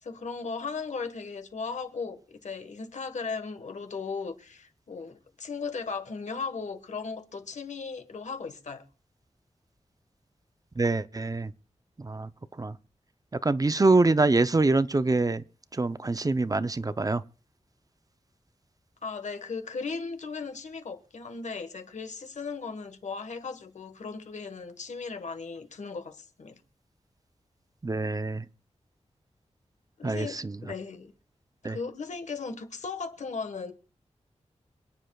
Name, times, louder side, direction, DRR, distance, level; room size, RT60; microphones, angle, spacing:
voice 1, 0.0-8.8 19.0-26.6 30.0-30.4 30.6-31.1 31.6-33.7, left 4 dB, 85° left, 1.5 m, -37 dB
voice 2, 10.8-11.5 12.0-12.3 12.6-12.8 13.4-15.4 15.7-17.2 27.8-28.4 30.0-30.5 31.6-31.8, right 3 dB, 30° right, 0.7 m, -25 dB
27.0 x 9.9 x 2.4 m
wide cardioid pair, 70°, 12 cm